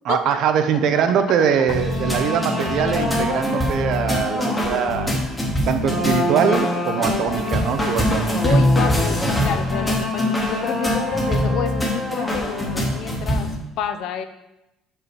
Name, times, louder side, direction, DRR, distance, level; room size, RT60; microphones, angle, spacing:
voice 1, 0.1-5.1 5.7-8.6, right 7 dB, 50° right, 8 dB, 0.6 m, -22 dB
sound 1, 1.7-13.6, left 1 dB, 5° left, 1.1 m, -22 dB
voice 2, 8.4-13.5 13.8-14.2, left 8 dB, 55° left, 9 dB, 0.6 m, -29 dB
5.6 x 5.5 x 6.1 m, 0.90 s
cardioid pair, 180°, 0 cm